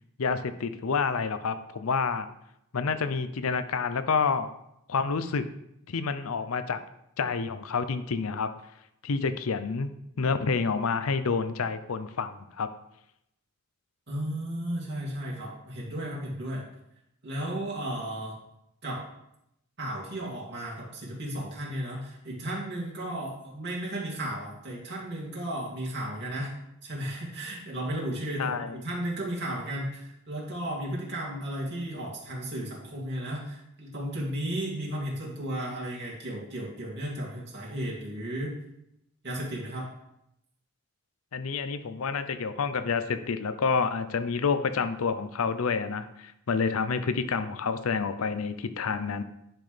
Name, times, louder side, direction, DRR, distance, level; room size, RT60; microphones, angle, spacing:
voice 1, 0.2-2.3 2.7-4.5 4.9-5.4 5.9-6.8 7.2-8.5 9.0-9.9 10.2-12.7 28.4-28.8 41.3-49.2, left 5 dB, 75° left, 11 dB, 0.6 m, -28 dB
voice 2, 14.1-16.7 17.2-18.4 18.8-19.0 19.8-26.5 26.8-38.5 39.2-39.9, right 1 dB, 50° right, -4 dB, 2.6 m, -34 dB
10.5 x 6.1 x 3.3 m, 0.81 s
head